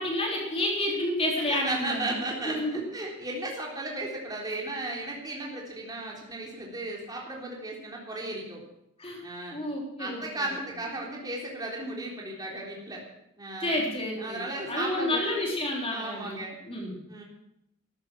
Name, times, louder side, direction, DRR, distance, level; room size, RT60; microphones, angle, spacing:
voice 1, 0.0-2.2 2.5-2.8 9.0-9.2 9.5-10.2 13.6-16.4 16.7-16.9, left 1 dB, 25° left, -1 dB, 3.6 m, -30 dB
voice 2, 1.5-8.6 9.2-9.6 10.0-13.0 13.4-13.8 14.2-15.3 15.8-16.6 17.1-17.2, right 2 dB, 20° right, -2 dB, 3.5 m, -35 dB
13.5 x 12.0 x 7.5 m, 0.80 s
head